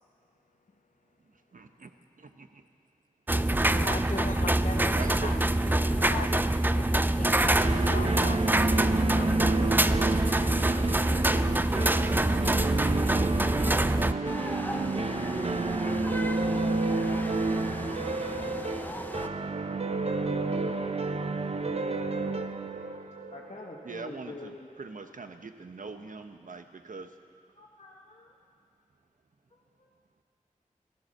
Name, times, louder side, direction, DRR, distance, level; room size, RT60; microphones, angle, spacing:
voice 1, 1.2-2.6 4.9-5.4 23.8-27.2, right 4 dB, 75° right, 7 dB, 0.9 m, -42 dB
sound 1, 3.3-14.1, right 1 dB, 15° right, 0.4 m, -25 dB
voice 2, 3.7-5.4 5.8-6.4 6.7-9.5 9.8-10.6, left 4 dB, 70° left, 8 dB, 0.8 m, -40 dB
sound 2, 7.6-24.3, right 3 dB, 50° right, 0.8 m, -30 dB
sound 3, 14.2-19.3, left 1 dB, 15° left, 0.8 m, -38 dB
voice 3, 23.3-24.7 27.5-28.3 29.5-29.9, left 2 dB, 50° left, -3 dB, 1.5 m, -46 dB
15.5 x 13.0 x 6.5 m, 2.3 s
wide cardioid pair, 50°, 14 cm